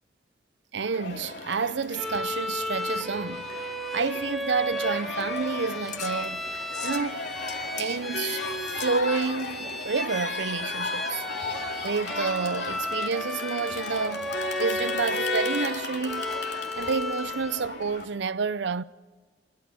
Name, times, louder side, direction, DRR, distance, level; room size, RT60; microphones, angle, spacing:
voice 1, 0.7-3.5 3.9-6.4 6.8-7.3 7.8-11.2 11.8-16.3 16.8-18.8, right 5 dB, 75° right, 0.6 m, -29 dB
Crowd, 0.9-18.0, left 3 dB, 70° left, 2.7 m, -35 dB
Bowed string instrument, 1.9-17.7, equal, ahead, 1.1 m, -34 dB
sound 1, 4.6-9.7, left 10 dB, 40° left, 1.1 m, -44 dB
25.5 x 22.5 x 6.3 m
head